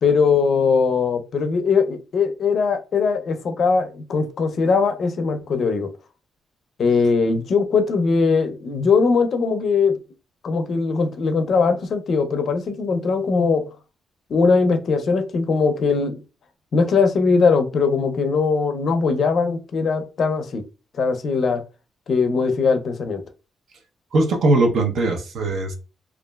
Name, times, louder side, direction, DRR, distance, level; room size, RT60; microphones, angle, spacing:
voice 1, 0.0-5.9 6.8-10.0 10.4-13.7 14.3-16.2 16.7-20.6 21.0-21.6 22.1-23.2, left 4 dB, 50° left, 0.4 m, -20 dB
voice 2, 24.1-25.8, right 2 dB, 65° right, 0.6 m, -20 dB
3.0 x 2.3 x 2.2 m
cardioid pair, 145°, 0 cm